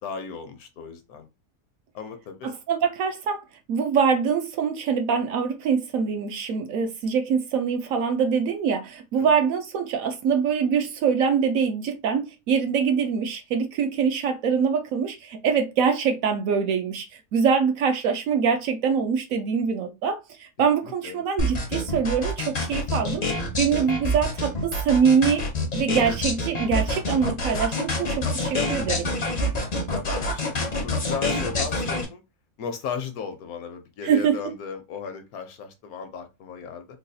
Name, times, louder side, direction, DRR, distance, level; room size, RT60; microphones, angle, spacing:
voice 1, 0.0-1.3 1.9-2.6 9.2-9.3 20.8-21.2 29.9-32.2 32.6-36.9, left 6 dB, 70° left, 1.1 m, -36 dB
voice 2, 2.7-3.4 3.7-17.1 17.3-23.2 23.6-25.4 25.7-29.1 34.0-34.5, right 6 dB, 70° right, 0.9 m, -24 dB
sound 1, 21.4-32.0, left 1 dB, 40° left, 0.6 m, -26 dB
3.9 x 2.3 x 2.7 m
omnidirectional pair, 1.6 m